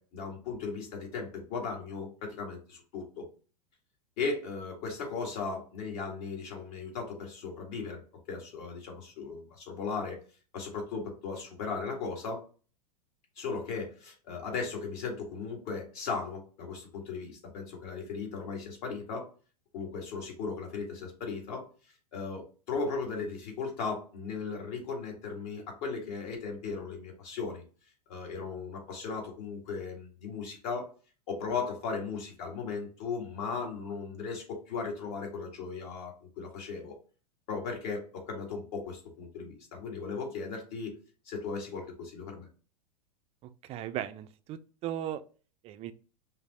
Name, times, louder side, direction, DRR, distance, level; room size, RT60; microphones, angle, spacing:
voice 1, 0.0-3.3 4.2-8.0 8.3-10.2 10.5-12.4 13.4-19.3 19.7-21.7 22.1-27.6 28.1-30.9 31.3-36.9 37.5-41.0 41.3-42.5, left 4 dB, 55° left, 1.9 m, -37 dB
voice 2, 43.6-45.2 45.6-45.9, right 11 dB, 30° right, 0.4 m, -37 dB
5.6 x 2.0 x 4.0 m
hypercardioid pair, 95°, 20 cm